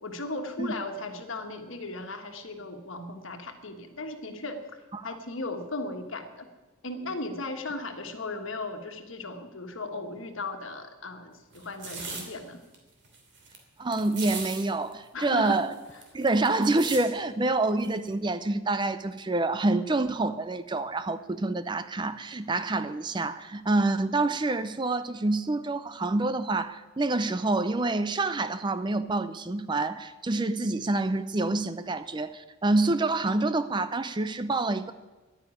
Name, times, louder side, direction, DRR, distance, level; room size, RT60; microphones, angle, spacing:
voice 1, 0.0-4.6 5.0-6.5 6.8-12.6 15.1-15.6, left 2 dB, 70° left, 1.5 m, -36 dB
sound 1, 11.5-12.2 12.7-12.8 13.0-13.6 13.9-14.6 14.9-15.0 15.2-17.0 17.8-18.1, right 4 dB, 55° right, 2.9 m, -38 dB
voice 2, 13.8-15.7 16.1-34.9, right 2 dB, 20° right, 0.4 m, -27 dB
11.5 x 9.9 x 9.7 m
head